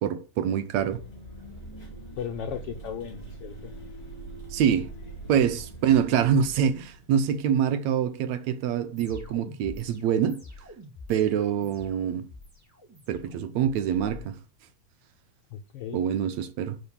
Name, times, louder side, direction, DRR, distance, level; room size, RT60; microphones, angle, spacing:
voice 1, 0.0-1.0 4.5-4.9 5.3-10.4 11.1-12.3 13.1-14.4 15.9-16.8, right 8 dB, 75° right, 2.1 m, -25 dB
sound 1, 0.7-7.6, right 2 dB, 10° left, 4.4 m, -43 dB
voice 2, 2.1-3.7 15.5-16.0, left 8 dB, 75° left, 1.3 m, -36 dB
sound 2, 9.0-14.3, left 1 dB, 5° right, 1.6 m, -46 dB
10.5 x 4.8 x 6.9 m
omnidirectional pair, 3.4 m